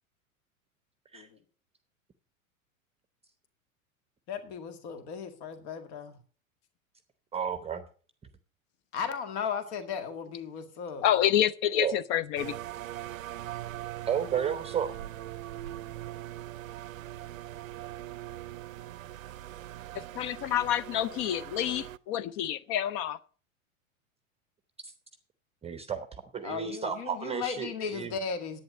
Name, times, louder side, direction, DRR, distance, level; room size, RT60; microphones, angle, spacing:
voice 1, 4.3-6.2 8.9-11.1 26.4-28.6, left 6 dB, 50° left, 8 dB, 2.0 m, -36 dB
voice 2, 7.3-7.8 11.8-11.9 14.0-14.9 24.8-24.9 25.6-26.1 26.3-28.1, right 8 dB, 15° right, 10 dB, 0.8 m, -32 dB
voice 3, 11.0-12.6 19.9-23.2, left 11 dB, 30° left, 18 dB, 0.4 m, -28 dB
sound 1, 12.4-22.0, right 14 dB, 70° right, 0.6 m, -41 dB
10.5 x 8.8 x 6.0 m, 0.41 s
figure-of-eight pair, 90°, 42 cm